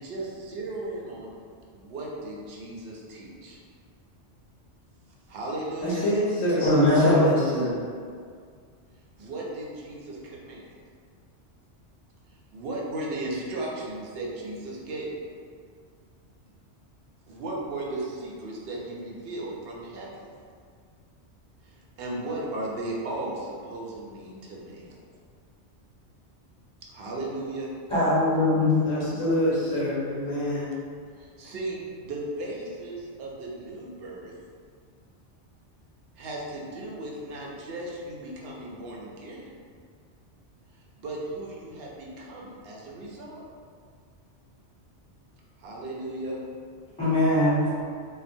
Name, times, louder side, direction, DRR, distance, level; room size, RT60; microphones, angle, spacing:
voice 1, 0.0-1.3 1.7-3.6 5.3-6.1 9.2-10.7 12.5-15.2 17.3-20.3 21.6-24.8 26.9-27.7 31.2-34.3 36.2-39.5 41.0-43.4 45.6-46.4, right 2 dB, 65° right, -3 dB, 0.7 m, -36 dB
voice 2, 5.8-7.7 28.8-30.7, equal, 90° left, -8 dB, 0.9 m, -25 dB
voice 3, 6.6-7.3 27.9-28.8 47.0-47.7, left 2 dB, 5° left, -14 dB, 1.0 m, -21 dB
3.0 x 2.0 x 2.5 m, 2.1 s
omnidirectional pair, 1.2 m